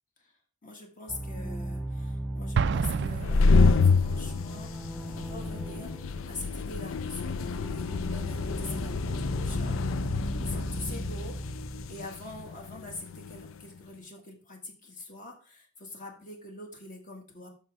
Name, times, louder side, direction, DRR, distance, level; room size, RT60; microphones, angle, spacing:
voice 1, 0.6-4.7 5.1-9.8 10.2-11.4 11.9-17.5, left 2 dB, 40° left, 2 dB, 1.6 m, -44 dB
sound 1, 1.1-11.9, right 1 dB, 5° right, 0.7 m, -37 dB
Explosion, 2.5-4.1, right 6 dB, 55° right, 0.3 m, -29 dB
sound 2, 3.1-13.5, left 4 dB, 70° left, 0.4 m, -28 dB
9.8 x 6.3 x 3.4 m, 0.39 s
head